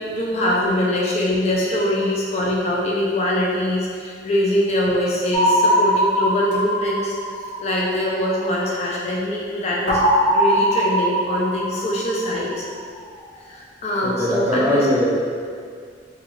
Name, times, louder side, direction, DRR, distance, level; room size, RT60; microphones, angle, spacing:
voice 1, 0.0-7.1 7.6-10.0 10.3-12.6 13.5-14.9, left 1 dB, 35° left, -4 dB, 0.4 m, -23 dB
sound 1, 5.3-8.2 9.9-12.7, equal, 55° left, 0.9 m, -21 dB
voice 2, 14.0-15.1, left 1 dB, 10° right, -7 dB, 0.6 m, -20 dB
4.6 x 2.3 x 3.1 m, 2.1 s
head